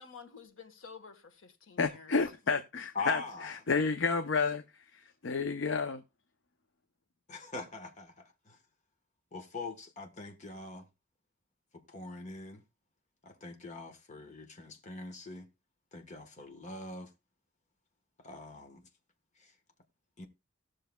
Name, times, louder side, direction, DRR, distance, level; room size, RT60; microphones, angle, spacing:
voice 1, 0.0-2.1, left 5 dB, 85° left, 1.4 m, -51 dB
voice 2, 1.8-4.6 4.9-6.0, left 4 dB, 65° left, 0.6 m, -31 dB
voice 3, 2.9-3.5 7.3-8.6 9.3-10.9 11.9-12.6 13.2-15.5 15.9-17.1 18.2-18.8 20.2-20.3, left 3 dB, 35° left, 1.3 m, -42 dB
18.5 x 6.5 x 2.3 m
head